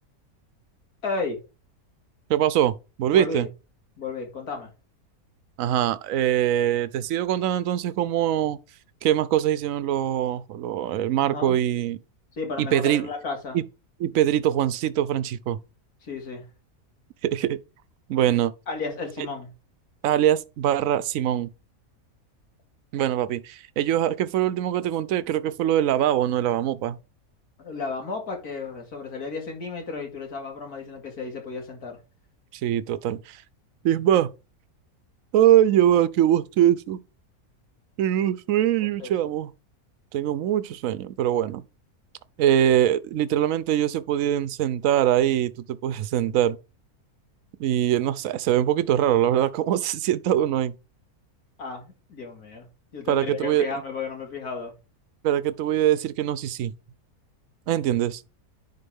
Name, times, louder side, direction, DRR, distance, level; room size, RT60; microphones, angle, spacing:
voice 1, 1.0-1.4 3.1-3.5 4.0-4.7 11.2-11.6 12.4-13.6 16.0-16.5 18.7-19.5 27.6-32.0 39.0-39.3 51.6-52.7 52.9-54.7, left 4 dB, 85° left, 2.7 m, -33 dB
voice 2, 2.3-3.5 5.6-8.6 9.0-12.0 12.6-13.1 13.5-13.6 14.0-15.6 17.2-17.6 18.1-18.5 20.0-21.5 22.9-27.0 32.6-33.4 33.8-34.3 35.3-37.0 38.0-39.5 40.1-41.6 42.4-46.6 47.6-50.7 53.1-53.7 55.2-56.7 57.7-58.2, right 11 dB, 70° right, 1.0 m, -23 dB
10.5 x 4.2 x 3.6 m
omnidirectional pair, 1.5 m